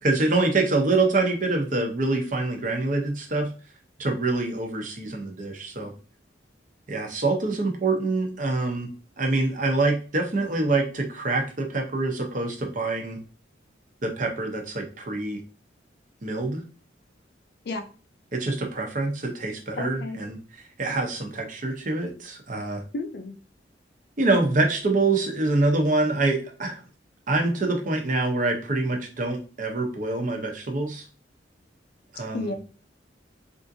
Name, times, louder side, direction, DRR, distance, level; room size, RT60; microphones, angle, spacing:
voice 1, 0.0-3.5 4.0-5.9 6.9-8.9 9.2-13.2 14.0-15.4 16.2-16.6 18.3-20.4 20.8-22.8 24.2-26.8 27.3-31.0 32.1-32.5, right 2 dB, 45° right, 3 dB, 0.8 m, -25 dB
voice 2, 19.8-20.2 22.9-23.4 32.2-32.5, left 2 dB, 60° left, 5 dB, 0.4 m, -32 dB
3.5 x 2.6 x 2.6 m, 0.36 s
head